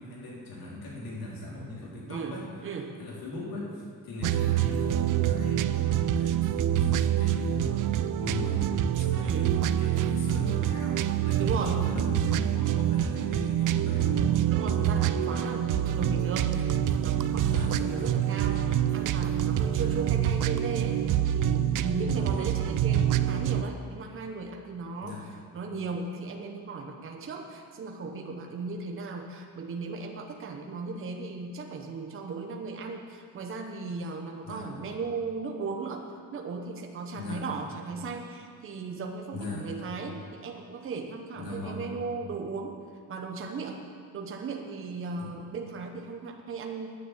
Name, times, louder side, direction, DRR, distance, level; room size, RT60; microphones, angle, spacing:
voice 1, 0.0-2.5 3.0-8.7 9.0-14.4 17.5-18.2 18.5-18.6 19.7-19.9 22.1-22.5 25.0-25.2 34.4-34.7 37.1-37.5 39.3-39.7 41.4-41.9 45.2-45.3, left 2 dB, 70° left, -4 dB, 3.7 m, -39 dB
voice 2, 2.1-2.9 9.2-9.5 11.4-11.8 14.5-25.2 25.5-42.8 43.1-43.8 44.1-46.9, right 4 dB, 35° right, 3 dB, 1.0 m, -37 dB
sound 1, 4.2-23.6, right 10 dB, 60° right, 0.5 m, -26 dB
9.7 x 9.3 x 7.4 m, 2.1 s
cardioid pair, 140°, 36 cm